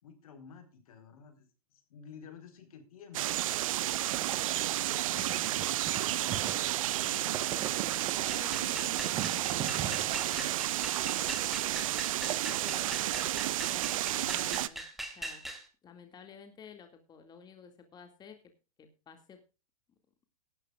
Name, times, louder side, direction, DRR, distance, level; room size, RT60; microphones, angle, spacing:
voice 1, 0.0-3.5 5.0-8.7, left 5 dB, 70° left, 8 dB, 4.2 m, -53 dB
sound 1, 3.1-14.7, right 14 dB, 60° right, 0.8 m, -31 dB
sound 2, 4.1-8.8 9.1-10.7, right 10 dB, 25° right, 1.1 m, -41 dB
voice 2, 4.8-5.8 6.3-6.6 8.3-10.6 12.2-13.4 13.7-14.9 15.1-15.4 15.8-18.4 18.8-19.4, left 6 dB, 20° left, 6 dB, 2.2 m, -52 dB
sound 3, 8.3-15.6, right 1 dB, ahead, 2.8 m, -42 dB
17.0 x 12.5 x 2.4 m, 0.31 s
hypercardioid pair, 120°, 19 cm